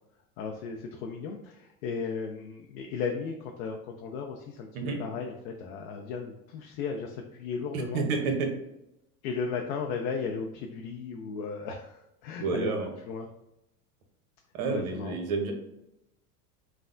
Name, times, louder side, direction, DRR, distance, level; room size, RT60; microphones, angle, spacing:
voice 1, 0.4-4.7 5.0-8.1 9.2-12.7 13.1-13.3 14.7-15.2, left 5 dB, 60° left, 2 dB, 0.5 m, -35 dB
voice 2, 7.7-8.5 12.4-12.9 14.5-15.5, right 4 dB, 65° right, 3 dB, 0.8 m, -29 dB
3.2 x 2.0 x 2.5 m, 0.86 s
hypercardioid pair, 95°, 46 cm